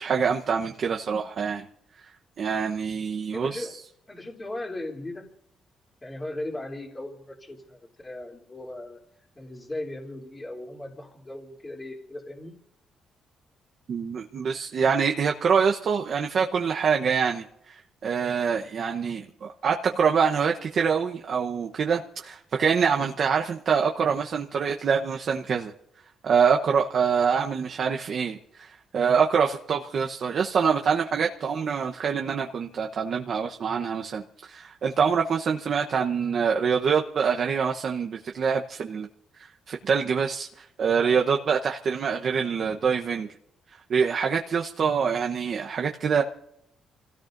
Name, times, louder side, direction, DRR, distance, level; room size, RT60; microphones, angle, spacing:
voice 1, 0.0-1.6 2.4-3.7 13.9-25.7 26.2-39.1 39.4-43.3 43.9-46.2, right 6 dB, 50° right, 2 dB, 1.0 m, -25 dB
voice 2, 3.3-3.7 4.1-5.2 6.0-9.0 9.3-12.5, left 1 dB, 20° left, 0 dB, 3.2 m, -37 dB
28.5 x 17.0 x 2.6 m, 0.75 s
cardioid pair, 130°, 0 cm